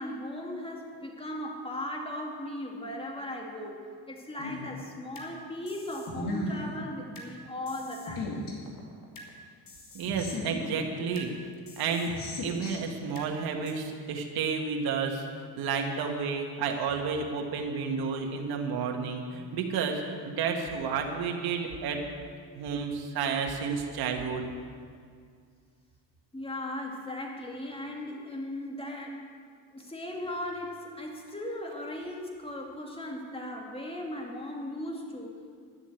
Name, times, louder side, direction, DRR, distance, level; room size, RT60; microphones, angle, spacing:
voice 1, 0.0-8.4 26.3-29.3 29.7-35.6, left 1 dB, 15° left, 0 dB, 2.4 m, -37 dB
sound 1, 4.4-5.3 5.7-7.3 7.7-9.3 9.7-11.3 11.7-13.3 13.7-13.8, left 1 dB, 60° left, 2.5 m, -37 dB
voice 2, 9.9-11.3 11.8-12.1 12.4-22.1 22.5-24.5, right 5 dB, 70° right, 2 dB, 1.6 m, -31 dB
12.0 x 7.1 x 9.1 m, 2.1 s
supercardioid pair, 80°, 38 cm